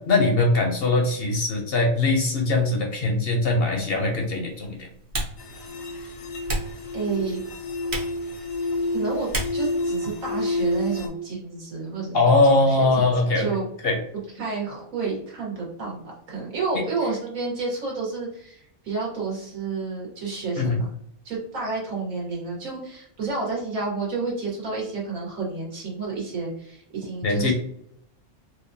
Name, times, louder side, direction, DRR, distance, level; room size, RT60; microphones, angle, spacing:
voice 1, 0.1-4.8 12.1-13.5 13.8-14.0 16.7-16.8 20.6-20.8 27.2-27.5, left 2 dB, 60° left, 2 dB, 0.7 m, -21 dB
Typing, 3.3-10.8, right 1 dB, 55° right, 1.1 m, -36 dB
sound 1, 5.4-11.1, left 2 dB, 80° left, 1.1 m, -29 dB
voice 2, 6.9-7.4 8.9-12.2 12.5-13.7 14.4-16.0 16.3-20.8 21.2-27.5, right 4 dB, 85° right, -3 dB, 1.7 m, -30 dB
4.3 x 2.3 x 2.6 m, 0.68 s
omnidirectional pair, 1.4 m